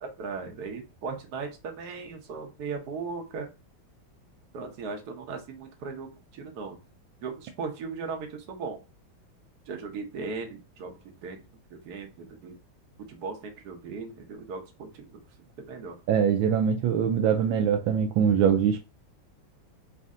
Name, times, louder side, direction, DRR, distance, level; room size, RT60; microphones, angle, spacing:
voice 1, 0.0-3.5 4.5-6.8 7.2-8.8 9.7-11.4 11.7-12.6 13.1-15.2 15.7-16.0, right 4 dB, 55° right, 1.4 m, -37 dB
voice 2, 16.1-18.8, right 7 dB, 80° right, 1.3 m, -23 dB
4.3 x 2.6 x 3.6 m
omnidirectional pair, 2.2 m